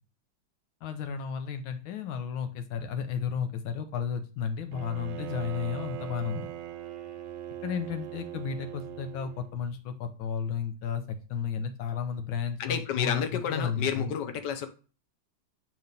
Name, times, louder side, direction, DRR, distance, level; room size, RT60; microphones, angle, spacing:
voice 1, 0.8-6.5 7.6-11.0 11.3-14.1, left 7 dB, 85° left, 7 dB, 1.6 m, -33 dB
Bowed string instrument, 4.7-9.6, right 11 dB, 85° right, 1.5 m, -40 dB
voice 2, 12.6-14.7, left 8 dB, 65° left, 8 dB, 1.5 m, -30 dB
8.5 x 3.1 x 5.2 m, 0.35 s
omnidirectional pair, 2.2 m